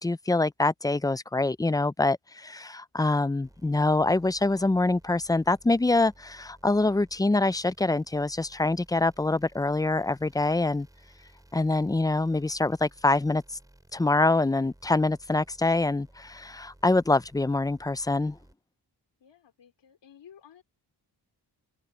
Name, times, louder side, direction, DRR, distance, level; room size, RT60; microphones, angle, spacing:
voice 1, 0.0-10.9 11.5-13.4 13.9-18.4, left 2 dB, 10° left, 0.3 m, -25 dB
sound 1, 3.4-18.5, right 1 dB, 10° right, 3.4 m, -57 dB
voice 2, 19.2-20.6, left 8 dB, 90° left, 3.1 m, -54 dB
open air
wide cardioid pair, 130°, 41 cm